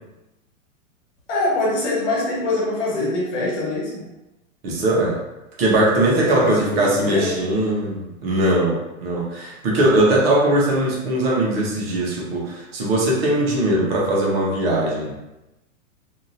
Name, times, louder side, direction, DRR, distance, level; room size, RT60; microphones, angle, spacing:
voice 1, 1.3-4.1 6.0-7.3, left 2 dB, 60° left, -5 dB, 1.4 m, -24 dB
voice 2, 4.6-5.2 5.6-15.2, right 1 dB, 45° right, -4 dB, 0.8 m, -20 dB
2.8 x 2.4 x 2.6 m, 0.97 s
hypercardioid pair, 155°, 41 cm